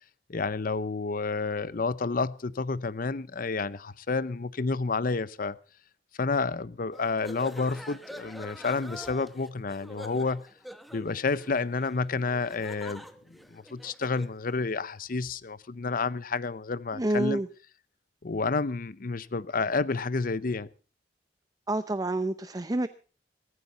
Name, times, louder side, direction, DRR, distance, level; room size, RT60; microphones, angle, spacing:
voice 1, 0.3-5.6 6.2-10.5 10.9-13.0 13.3-17.4 18.2-20.7, left 4 dB, 50° left, 0.7 m, -30 dB
sound 1, 6.9-14.4, equal, ahead, 1.1 m, -45 dB
voice 2, 16.9-17.5 21.7-22.9, right 1 dB, 20° right, 0.6 m, -28 dB
17.0 x 15.0 x 4.0 m
head